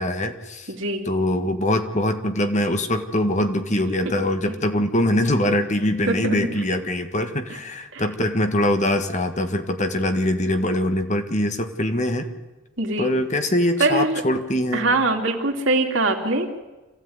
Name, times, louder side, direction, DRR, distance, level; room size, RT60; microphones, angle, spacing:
voice 1, 0.0-0.7 1.0-12.3 13.0-14.9, left 1 dB, 35° left, 7 dB, 1.7 m, -23 dB
voice 2, 0.7-1.1 6.1-6.4 7.9-8.0 12.8-13.2 13.8-14.2 14.7-16.6, right 2 dB, 65° right, 3 dB, 3.0 m, -22 dB
26.5 x 16.0 x 9.5 m, 1.1 s
head